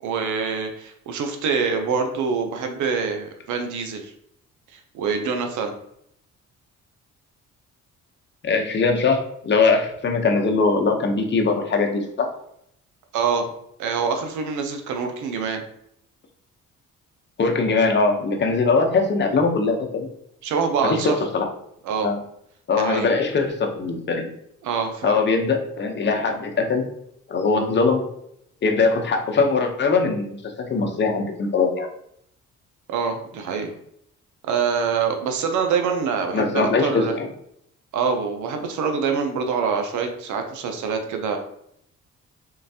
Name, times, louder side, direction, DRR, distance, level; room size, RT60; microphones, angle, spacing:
voice 1, 0.0-4.1 4.7-5.7 13.1-13.5 13.8-15.6 20.4-21.2 21.8-22.1 22.8-23.1 24.6-25.2 32.9-33.7 34.4-37.1 37.9-41.4, right 5 dB, 75° right, 5 dB, 0.6 m, -25 dB
voice 2, 8.4-12.3 17.4-20.1 20.8-21.5 22.0-22.2 22.7-24.3 25.0-26.8 27.3-28.0 28.6-31.9 36.3-37.3, left 4 dB, 35° left, 3 dB, 0.8 m, -21 dB
3.8 x 3.1 x 2.8 m, 0.73 s
cardioid pair, 90°, 30 cm